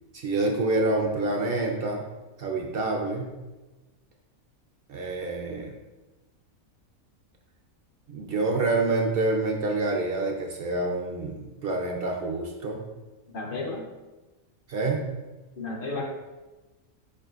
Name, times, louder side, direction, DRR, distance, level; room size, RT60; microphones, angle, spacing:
voice 1, 0.1-2.0 2.4-3.3 4.9-5.7 8.1-12.9 14.7-15.1, right 2 dB, 65° right, 1 dB, 0.6 m, -27 dB
voice 2, 13.3-13.8 15.6-16.1, left 3 dB, 50° left, 1 dB, 0.7 m, -32 dB
4.8 x 4.5 x 2.4 m, 1.1 s
omnidirectional pair, 1.5 m